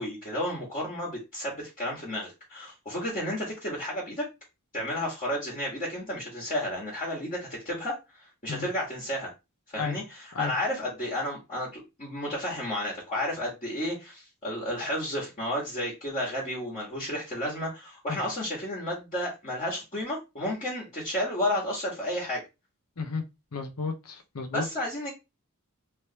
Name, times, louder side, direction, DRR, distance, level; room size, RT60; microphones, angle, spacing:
voice 1, 0.0-4.2 4.7-8.0 8.4-9.3 9.7-22.4 24.5-25.1, left 1 dB, 35° left, -6 dB, 1.5 m, -32 dB
voice 2, 23.5-24.7, left 4 dB, 75° left, 5 dB, 0.7 m, -33 dB
3.2 x 3.2 x 2.8 m, 0.25 s
head